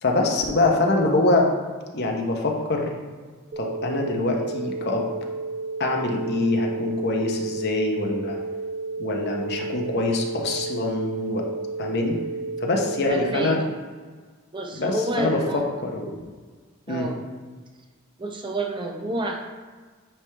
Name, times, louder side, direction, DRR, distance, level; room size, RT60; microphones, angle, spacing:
voice 1, 0.0-1.5 1.9-2.9 3.6-5.1 5.8-8.4 9.0-11.4 11.8-12.2 12.6-13.6 14.7-16.2 16.9-17.1, left 2 dB, 50° left, 1 dB, 0.8 m, -24 dB
sound 1, 3.5-13.5, right 3 dB, 60° right, 0.9 m, -32 dB
voice 2, 13.1-13.6 14.5-15.7 16.9-17.2 18.2-19.4, right 1 dB, 20° right, 2 dB, 0.6 m, -29 dB
8.9 x 3.3 x 3.3 m, 1.5 s
head